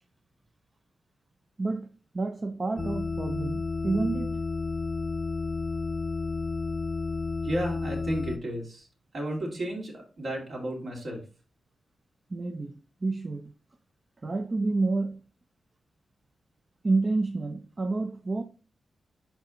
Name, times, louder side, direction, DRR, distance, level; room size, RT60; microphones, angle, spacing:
voice 1, 2.1-4.4 12.3-13.5 14.2-15.2 16.8-18.4, right 3 dB, 35° right, 0.6 m, -29 dB
sound 1, 2.8-8.4, left 3 dB, 25° left, 0.4 m, -31 dB
voice 2, 7.4-8.9 9.1-11.2, right 1 dB, 60° right, 2.6 m, -33 dB
5.7 x 4.7 x 3.8 m
cardioid pair, 65°, 0 cm